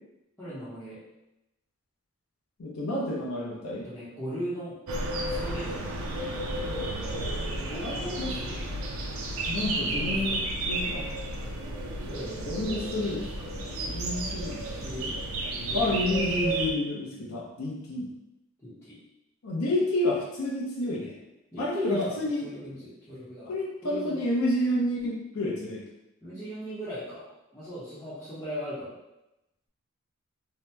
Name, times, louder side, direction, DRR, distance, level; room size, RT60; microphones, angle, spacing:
voice 1, 0.4-1.0 3.7-4.8 5.3-6.0 7.5-8.9 9.6-10.4 12.1-12.5 14.8-16.2 18.6-19.0 21.5-23.6 23.8-24.2 26.2-29.0, equal, 10° left, -14 dB, 0.7 m, -38 dB
voice 2, 2.6-3.9 7.8-8.3 9.5-10.4 10.7-11.1 12.5-14.6 15.7-18.1 19.4-21.1 21.6-22.4 23.5-25.8, left 1 dB, 85° left, -3 dB, 0.6 m, -30 dB
sound 1, 4.9-16.7, right 2 dB, 80° right, 0.5 m, -32 dB
2.8 x 2.0 x 3.3 m, 0.92 s
head